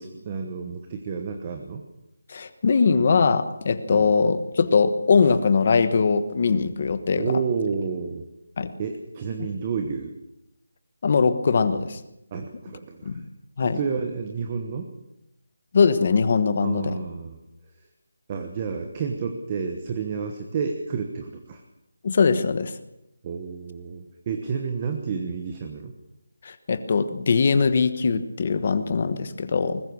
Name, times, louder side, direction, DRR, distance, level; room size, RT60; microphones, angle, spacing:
voice 1, 0.0-1.8 3.9-4.1 7.2-8.3 8.8-10.1 12.3-13.1 13.6-14.9 16.6-17.4 18.3-21.6 23.2-25.9, right 5 dB, 15° right, 5 dB, 1.1 m, -30 dB
voice 2, 2.3-7.3 8.6-8.7 11.0-12.0 13.0-13.2 13.6-13.8 15.7-17.0 22.0-22.7 26.4-29.8, left 5 dB, 30° left, 11 dB, 1.2 m, -21 dB
21.5 x 20.0 x 6.3 m, 0.87 s
figure-of-eight pair, 180°, 0 cm